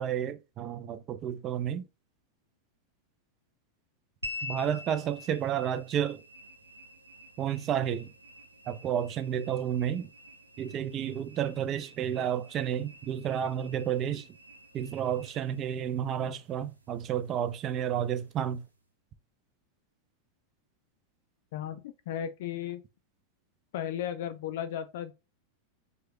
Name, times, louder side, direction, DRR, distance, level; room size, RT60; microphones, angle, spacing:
voice 1, 0.0-1.9 4.4-6.2 7.4-8.1 8.7-10.1 10.6-14.3 14.7-18.6, right 9 dB, 30° right, 0.4 m, -31 dB
sound 1, 4.2-18.8, left 3 dB, 85° right, 0.7 m, -48 dB
voice 2, 21.5-22.8 23.7-25.1, left 10 dB, 55° left, 0.4 m, -35 dB
4.6 x 2.2 x 2.9 m
figure-of-eight pair, 90°, 0 cm